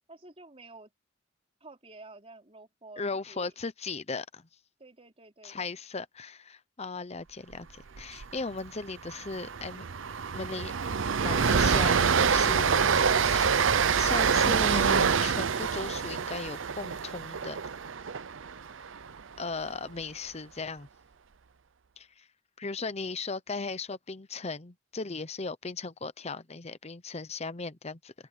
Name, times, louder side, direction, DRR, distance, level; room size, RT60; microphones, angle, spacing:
voice 1, 0.1-0.9 1.6-3.5 4.8-5.7 19.6-19.8 22.8-22.9, right 2 dB, 30° right, 4.3 m, -51 dB
voice 2, 3.0-4.5 5.4-9.8 10.3-10.7 11.2-13.7 14.0-17.6 19.4-20.9 22.0-22.3 22.6-28.1, left 4 dB, 30° left, 0.8 m, -37 dB
Train, 8.0-8.2 8.5-8.7 9.0-19.2, right 6 dB, 65° right, 0.7 m, -26 dB
open air
head